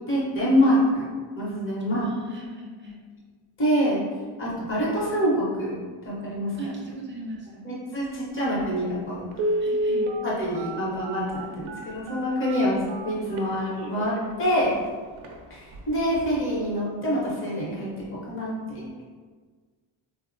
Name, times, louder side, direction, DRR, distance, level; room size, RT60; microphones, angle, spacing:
voice 1, 0.1-1.0 1.3-2.1 3.6-4.0 4.4-6.5 7.6-9.3 10.2-12.8 13.0-14.8 15.5-18.8, equal, 25° left, -6 dB, 0.8 m, -26 dB
voice 2, 2.0-3.0 6.6-7.7 9.6-10.1 12.5-12.7, right 1 dB, 25° right, -2 dB, 0.4 m, -38 dB
Telephone, 8.6-8.7 9.3-14.2 14.7-14.8 15.2-15.4 15.7-16.0 16.3-16.4, right 1 dB, 80° right, 0.6 m, -29 dB
3.5 x 2.0 x 2.5 m, 1.5 s
cardioid pair, 145°, 48 cm